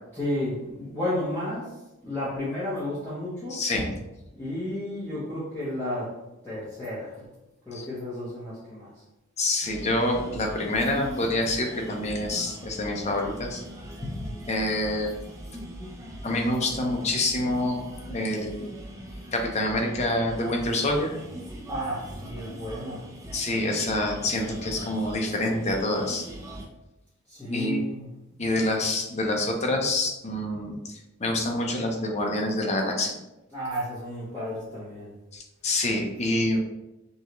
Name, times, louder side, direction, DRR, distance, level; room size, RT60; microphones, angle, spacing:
voice 1, 0.1-3.6 4.4-6.2 6.4-7.3 7.6-9.0 10.8-10.9 11.1-11.3 21.7-23.1 27.3-28.4 33.5-35.1, left 1 dB, 10° left, -11 dB, 1.0 m, -32 dB
voice 2, 3.5-3.9 7.7-7.8 9.4-13.6 14.0-15.1 16.2-18.7 19.3-21.2 23.3-26.3 27.4-27.8 28.4-33.2 35.3-36.6, left 1 dB, 30° left, 1 dB, 0.6 m, -27 dB
sound 1, 9.6-26.7, equal, 15° right, 0.6 m, -41 dB
5.4 x 2.4 x 3.0 m, 0.97 s
head